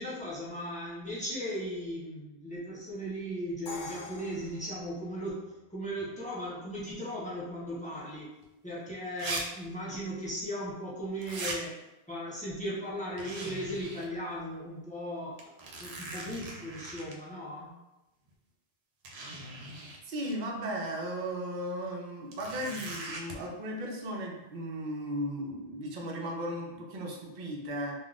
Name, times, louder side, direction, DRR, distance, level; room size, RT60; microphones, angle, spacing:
voice 1, 0.0-8.3 8.6-11.8 12.1-15.4 15.8-17.8, equal, 10° left, -7 dB, 0.7 m, -37 dB
Crash cymbal, 3.7-5.6, left 3 dB, 65° left, 0.8 m, -45 dB
sound 1, 8.4-8.5 9.2-9.4 9.7-9.8 11.2-11.6 13.2-14.1 14.5-14.6 15.4-17.1 18.3-18.4 19.0-20.0 22.3-23.4, right 2 dB, 90° right, 0.8 m, -40 dB
voice 2, 20.1-27.9, equal, 55° right, 0 dB, 0.7 m, -36 dB
3.5 x 2.3 x 2.4 m, 1.0 s
omnidirectional pair, 1.1 m